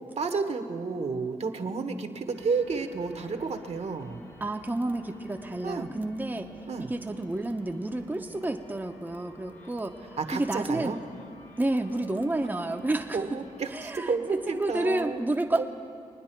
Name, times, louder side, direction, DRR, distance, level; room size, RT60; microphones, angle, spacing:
voice 1, 0.2-4.2 5.6-5.9 6.7-6.9 10.2-11.0 13.1-15.2 15.5-15.7, right 4 dB, 55° right, 7 dB, 1.1 m, -31 dB
sound 1, 2.3-15.2, left 2 dB, 75° left, 1.5 m, -53 dB
voice 2, 4.4-6.5 6.8-10.9 11.6-13.2 13.7-14.1 14.5-15.7, right 2 dB, 15° right, 3 dB, 0.8 m, -30 dB
23.0 x 9.6 x 4.5 m, 2.4 s
cardioid pair, 55°, 14 cm